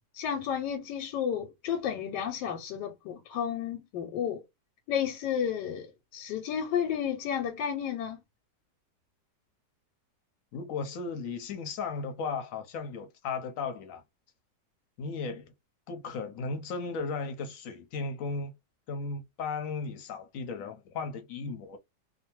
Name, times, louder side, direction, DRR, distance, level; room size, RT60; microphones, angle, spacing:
voice 1, 0.1-4.4 4.9-8.2, left 8 dB, 90° left, 1.3 m, -32 dB
voice 2, 10.5-14.0 15.0-15.5 15.9-18.5 18.9-21.8, left 4 dB, 65° left, 0.9 m, -35 dB
2.7 x 2.2 x 2.8 m
omnidirectional pair, 1.8 m